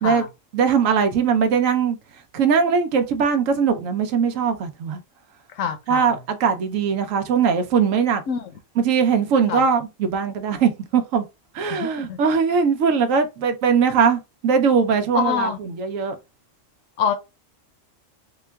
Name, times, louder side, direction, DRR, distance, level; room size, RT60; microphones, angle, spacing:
voice 1, 0.5-2.0 2.3-5.0 5.9-8.2 8.8-11.2 11.5-16.2, right 6 dB, 85° right, 1.1 m, -20 dB
voice 2, 5.6-6.1 8.3-8.4 9.5-9.6 11.7-12.2 15.1-15.6 17.0-17.1, left 7 dB, 80° left, 1.1 m, -25 dB
3.7 x 2.4 x 3.3 m
omnidirectional pair, 1.3 m